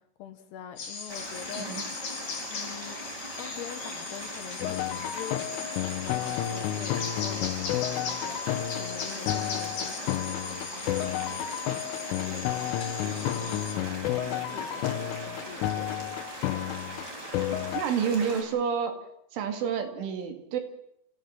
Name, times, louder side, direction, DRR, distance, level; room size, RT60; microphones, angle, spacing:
voice 1, 0.0-1.7 2.5-3.1 3.4-11.4 12.1-16.1 16.5-16.7, left 9 dB, 70° left, 8 dB, 2.8 m, -45 dB
sound 1, 0.8-13.7, left 5 dB, 50° left, 4.8 m, -39 dB
sound 2, 1.1-18.4, right 1 dB, 20° right, 4.8 m, -40 dB
sound 3, 4.6-17.8, left 12 dB, 85° left, 3.6 m, -31 dB
voice 2, 17.7-19.0 19.3-20.6, right 7 dB, 80° right, 6 dB, 4.7 m, -29 dB
29.5 x 15.0 x 7.5 m, 0.76 s
omnidirectional pair, 5.6 m